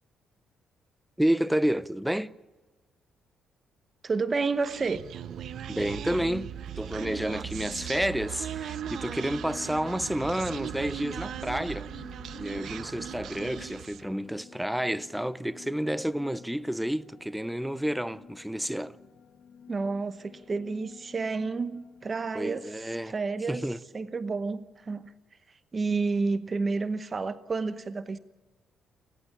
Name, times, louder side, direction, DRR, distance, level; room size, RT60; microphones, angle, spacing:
voice 1, 1.2-2.4 5.7-6.5 6.8-11.9 12.4-19.0 22.3-23.1 23.5-23.8, right 1 dB, 5° right, 0.6 m, -30 dB
voice 2, 4.0-5.0 19.7-23.7 23.9-25.1 25.7-28.2, right 4 dB, 35° right, 0.9 m, -30 dB
Human voice, 4.6-14.1, right 10 dB, 70° right, 0.7 m, -38 dB
sound 1, 7.0-23.4, left 7 dB, 60° left, 1.5 m, -51 dB
29.5 x 11.5 x 8.5 m
cardioid pair, 90°, 0 cm